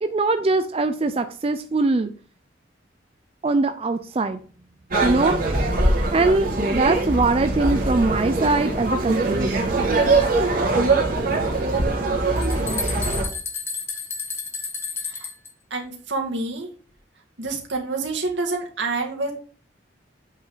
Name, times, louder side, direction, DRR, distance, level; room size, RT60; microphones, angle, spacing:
voice 1, 0.0-2.1 3.4-4.4 5.0-5.4 6.1-9.8, right 3 dB, 30° right, 9 dB, 0.4 m, -22 dB
sound 1, 4.9-13.2, right 2 dB, 50° right, 2.2 m, -22 dB
sound 2, 12.0-12.1 12.4-15.5, left 4 dB, 15° left, 1.3 m, -31 dB
voice 2, 15.7-16.7 17.4-19.3, right 3 dB, 80° right, 1 dB, 2.2 m, -27 dB
8.3 x 6.1 x 3.9 m, 0.40 s
head